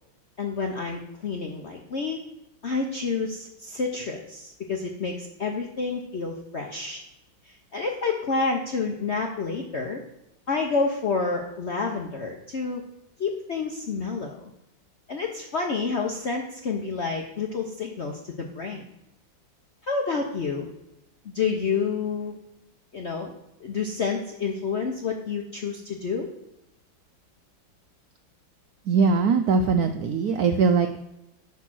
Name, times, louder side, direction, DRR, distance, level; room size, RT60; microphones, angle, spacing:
voice 1, 0.4-2.2 2.6-7.0 7.5-10.0 10.5-12.8 13.2-14.5 15.1-18.8 19.8-20.7 21.2-22.4 22.9-23.3 23.6-26.3, left 4 dB, 65° left, 2 dB, 0.6 m, -29 dB
voice 2, 28.9-31.1, right 5 dB, 80° right, 8 dB, 0.8 m, -21 dB
10.0 x 3.6 x 6.2 m, 0.89 s
omnidirectional pair, 2.1 m